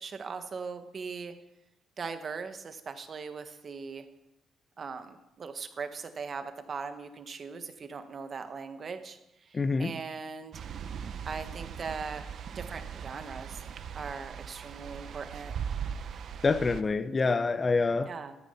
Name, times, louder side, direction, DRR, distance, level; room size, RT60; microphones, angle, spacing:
voice 1, 0.0-1.3 2.0-4.0 4.8-10.6 11.2-12.3 12.5-13.6 13.9-15.5 18.1-18.4, right 5 dB, 45° right, 1.2 m, -40 dB
voice 2, 9.5-9.9 16.4-18.1, left 4 dB, 30° left, 0.6 m, -26 dB
sound 1, 10.5-16.8, right 7 dB, 65° right, 0.7 m, -39 dB
12.5 x 8.4 x 5.7 m
cardioid pair, 90°, 0 cm